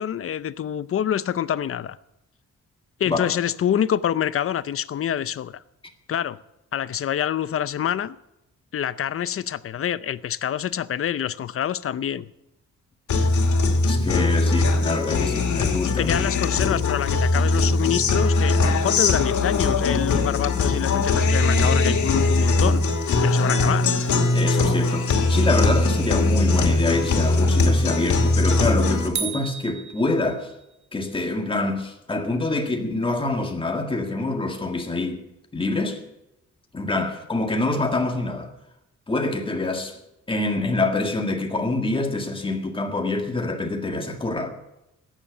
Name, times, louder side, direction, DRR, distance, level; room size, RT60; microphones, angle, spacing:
voice 1, 0.0-2.0 3.0-5.6 6.1-6.4 6.7-8.2 8.7-12.3 16.0-22.8 23.2-23.9, left 9 dB, 50° left, 0.6 m, -26 dB
Guitar, 13.1-29.1, left 3 dB, 80° left, 2.3 m, -21 dB
voice 2, 13.8-16.2 16.5-16.6 24.3-30.5 30.9-35.2 35.5-36.0 36.7-38.5 39.1-40.0 40.3-44.5, left 2 dB, 20° left, 1.8 m, -26 dB
sound 1, 29.2-30.7, right 6 dB, 70° right, 2.1 m, -33 dB
14.0 x 9.8 x 8.7 m
wide cardioid pair, 160°, 29 cm